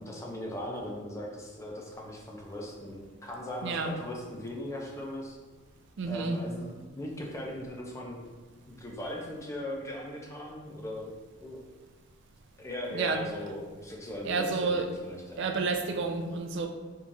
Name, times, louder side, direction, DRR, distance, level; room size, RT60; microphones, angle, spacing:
voice 1, 0.0-5.4 6.1-8.3 8.7-11.1 11.4-11.6 12.6-15.5, left 1 dB, 15° left, -2 dB, 0.4 m, -39 dB
voice 2, 3.6-3.9 6.0-6.4 12.9-13.2 14.3-14.9 15.4-16.7, right 4 dB, 55° right, 5 dB, 0.3 m, -30 dB
4.5 x 2.4 x 2.6 m, 1.4 s
head